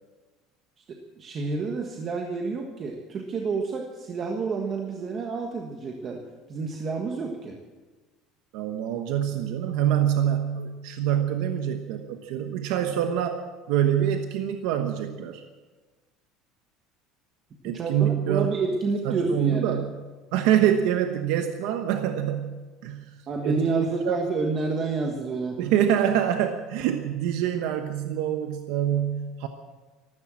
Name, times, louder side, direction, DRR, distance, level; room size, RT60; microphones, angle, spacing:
voice 1, 0.9-6.2 6.5-7.6 17.6-19.7 23.3-25.6, right 4 dB, 30° right, 2 dB, 1.4 m, -29 dB
voice 2, 8.5-13.4 13.7-15.4 17.6-18.5 19.0-19.9 20.3-23.1 23.4-24.2 25.6-29.5, right 10 dB, 70° right, 6 dB, 1.1 m, -25 dB
14.5 x 13.0 x 7.6 m, 1.3 s
cardioid pair, 165°, 0 cm